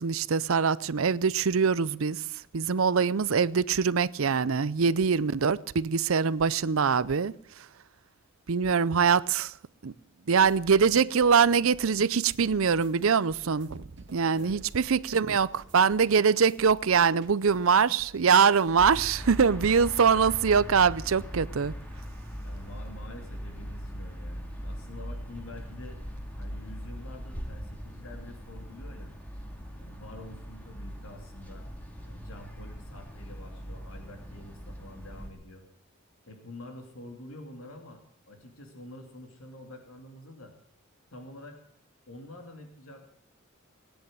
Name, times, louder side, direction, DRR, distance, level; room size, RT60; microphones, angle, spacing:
voice 1, 0.0-2.2 2.5-7.3 8.5-9.5 9.8-9.9 10.3-13.8 14.1-21.7, right 6 dB, 70° right, 0.6 m, -23 dB
sound 1, 10.4-18.8, right 2 dB, 55° right, 2.0 m, -52 dB
sound 2, 18.8-35.3, equal, 5° left, 2.5 m, -40 dB
voice 2, 22.4-26.0 26.4-29.1 29.8-31.7 32.0-35.6 36.3-40.5 41.1-41.6 42.1-43.1, left 1 dB, 75° left, 2.7 m, -47 dB
18.5 x 10.5 x 7.6 m
head